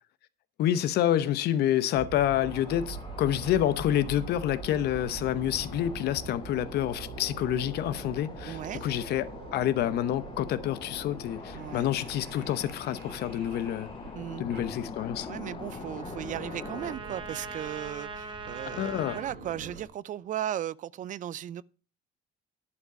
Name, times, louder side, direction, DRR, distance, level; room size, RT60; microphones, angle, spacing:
voice 1, 0.6-13.9 14.4-15.3 18.7-19.2, left 11 dB, 75° left, 0.9 m, -28 dB
sound 1, 1.9-19.9, right 5 dB, 75° right, 3.1 m, -44 dB
sound 2, 2.3-17.0, left 6 dB, 30° left, 0.6 m, -44 dB
voice 2, 8.4-8.8 11.5-11.9 14.1-14.5 15.3-21.6, right 11 dB, 50° right, 0.4 m, -36 dB
Trumpet, 14.9-19.3, right 3 dB, 30° right, 1.6 m, -42 dB
11.0 x 4.8 x 7.0 m
cardioid pair, 110°, 17 cm